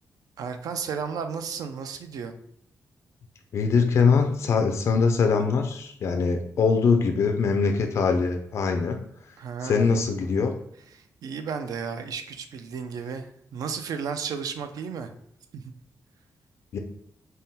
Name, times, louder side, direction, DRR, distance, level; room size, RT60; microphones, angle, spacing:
voice 1, 0.4-2.3 9.4-9.9 10.9-13.3 13.5-15.1 15.5-15.6, right 6 dB, 75° right, 8 dB, 0.4 m, -33 dB
voice 2, 3.5-9.0 9.6-10.5 16.7-16.8, left 5 dB, 50° left, 4 dB, 0.3 m, -22 dB
3.6 x 2.1 x 4.1 m, 0.69 s
wide cardioid pair, 180°, 6 cm